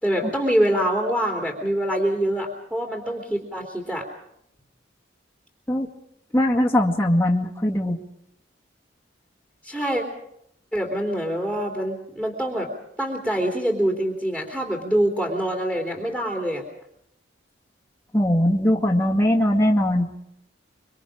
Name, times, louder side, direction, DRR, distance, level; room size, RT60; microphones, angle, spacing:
voice 1, 0.0-4.1 9.6-10.0 10.7-12.7 13.0-16.6, right 1 dB, 5° right, -1 dB, 3.3 m, -25 dB
voice 2, 6.3-8.0 18.1-20.1, left 1 dB, 15° left, -1 dB, 2.0 m, -20 dB
25.5 x 24.5 x 5.0 m, 0.75 s
head